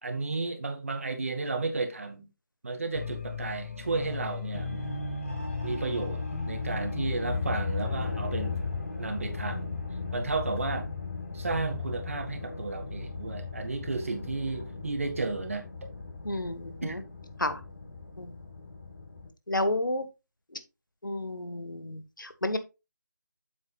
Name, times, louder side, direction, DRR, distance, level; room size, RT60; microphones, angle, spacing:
voice 1, 0.0-2.3 2.6-4.8 5.6-8.6 9.0-9.7 10.1-10.9 11.3-15.7 16.8-17.0, right 3 dB, 40° right, 1.8 m, -33 dB
sound 1, 2.9-19.3, left 4 dB, 45° left, 3.7 m, -36 dB
voice 2, 16.2-17.0 17.4-17.6 18.2-18.3 19.5-20.1 20.5-20.6 21.0-22.6, left 1 dB, 75° left, 1.6 m, -31 dB
8.8 x 7.7 x 2.4 m
figure-of-eight pair, 160°, 11 cm